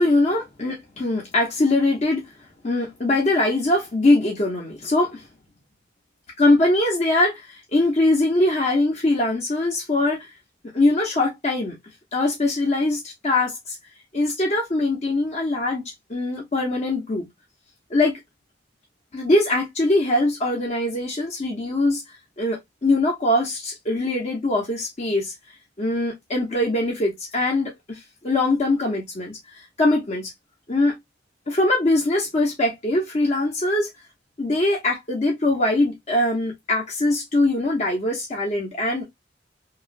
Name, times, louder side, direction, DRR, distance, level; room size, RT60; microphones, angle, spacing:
voice 1, 0.0-2.3 2.6-5.3 6.4-10.3 10.7-11.8 12.1-13.8 14.1-15.8 16.1-17.3 17.9-18.2 19.1-22.0 22.4-25.3 25.8-29.4 29.8-30.3 30.7-31.0 31.5-33.9 34.4-39.0, left 2 dB, 40° left, 0.7 m, -22 dB
2.9 x 2.3 x 2.5 m
head